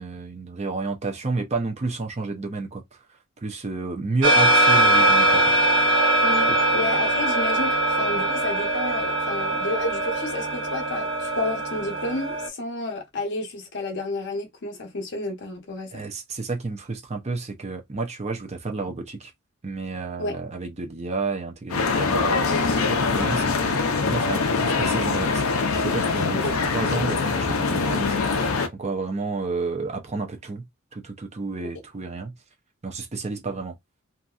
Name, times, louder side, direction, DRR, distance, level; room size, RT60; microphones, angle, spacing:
voice 1, 0.0-2.8 3.4-5.4 5.7-5.9 6.5-6.6 15.9-19.3 19.6-25.4 25.8-28.1 28.7-30.6 30.9-32.3 32.8-33.7, right 3 dB, 30° right, 0.6 m, -31 dB
sound 1, 4.2-12.5, right 1 dB, 65° right, 0.8 m, -21 dB
voice 2, 6.2-16.0 20.2-20.4 26.4-26.5, left 2 dB, 55° left, 0.9 m, -31 dB
sound 2, 21.7-28.7, left 4 dB, 80° left, 0.6 m, -23 dB
2.8 x 2.6 x 2.3 m
head